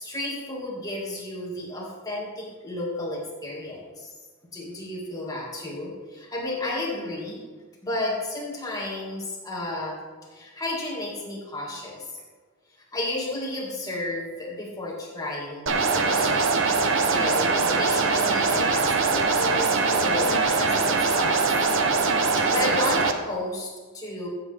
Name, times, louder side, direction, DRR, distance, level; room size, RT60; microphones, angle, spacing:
voice 1, 0.0-4.1 4.5-7.4 7.8-9.9 10.3-12.0 12.9-15.7 15.9-16.5 17.1-21.4 22.4-24.3, left 2 dB, 20° left, -3 dB, 2.1 m, -32 dB
sound 1, 15.7-23.1, right 4 dB, 65° right, 0.9 m, -22 dB
14.5 x 7.9 x 3.5 m, 1.5 s
head